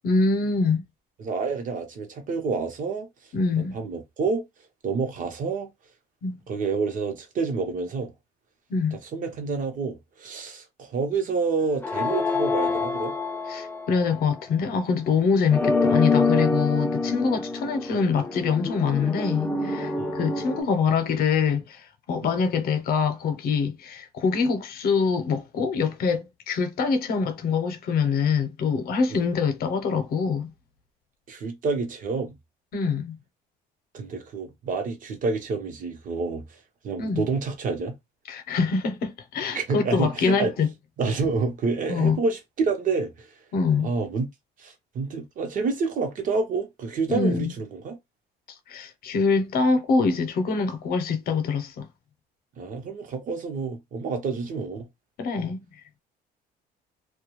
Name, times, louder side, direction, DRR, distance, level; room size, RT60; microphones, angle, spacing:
voice 1, 0.0-0.8 3.3-3.7 6.2-6.3 8.7-9.0 13.5-30.5 32.7-33.2 37.0-37.2 38.3-40.7 41.9-42.2 43.5-43.9 47.1-47.6 48.7-51.9 55.2-55.6, left 5 dB, 65° left, 0.7 m, -24 dB
voice 2, 1.2-3.1 3.6-4.4 4.8-5.7 6.5-8.1 9.1-13.1 20.0-20.2 29.1-29.3 31.3-32.4 33.9-36.4 36.8-37.9 39.5-40.5 41.0-43.3 43.8-44.3 44.6-48.0 52.6-54.8, right 4 dB, 50° right, 0.8 m, -28 dB
sound 1, 11.8-14.3 15.5-20.6, left 3 dB, 10° left, 0.5 m, -26 dB
2.3 x 2.2 x 3.1 m
cardioid pair, 110°, 17 cm